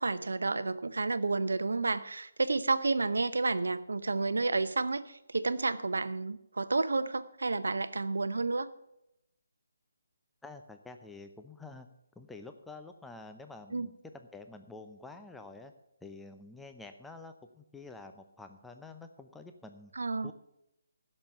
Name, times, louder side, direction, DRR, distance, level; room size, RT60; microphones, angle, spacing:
voice 1, 0.0-8.7 13.7-13.9 20.0-20.3, right 3 dB, 60° right, 14 dB, 0.8 m, -31 dB
voice 2, 10.4-11.9 12.2-15.7 16.0-19.9 20.2-20.3, left 3 dB, 5° left, 6 dB, 0.6 m, -48 dB
15.5 x 6.4 x 6.9 m, 0.82 s
figure-of-eight pair, 145°, 0 cm